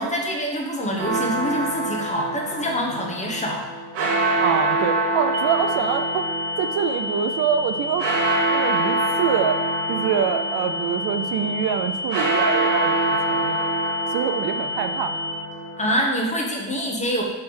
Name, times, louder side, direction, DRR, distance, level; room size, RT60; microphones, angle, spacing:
voice 1, 0.0-3.7 15.8-17.2, equal, 15° left, 0 dB, 0.9 m, -25 dB
sound 1, 1.0-15.9, right 2 dB, 90° right, 2.0 m, -26 dB
voice 2, 4.4-6.3 6.6-8.1 8.5-9.6 9.9-15.3, right 8 dB, 60° right, 8 dB, 0.5 m, -25 dB
sound 2, 5.3-15.3, left 2 dB, 25° right, 0.7 m, -30 dB
6.9 x 3.3 x 6.2 m, 1.1 s
cardioid pair, 155°, 44 cm